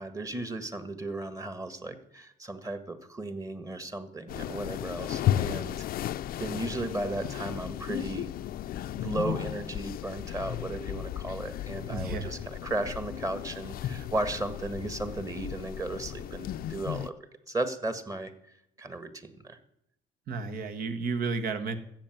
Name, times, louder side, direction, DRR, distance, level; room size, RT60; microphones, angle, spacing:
voice 1, 0.0-5.9 6.4-8.3 9.0-17.1 17.5-18.3 18.8-19.6, right 2 dB, 20° right, 10 dB, 1.7 m, -35 dB
sound 1, 4.3-17.1, left 12 dB, 60° left, 0.6 m, -34 dB
voice 2, 11.9-12.4 20.3-21.8, right 4 dB, 60° right, 8 dB, 1.7 m, -32 dB
14.0 x 7.6 x 9.2 m, 0.78 s
cardioid pair, 110°, 17 cm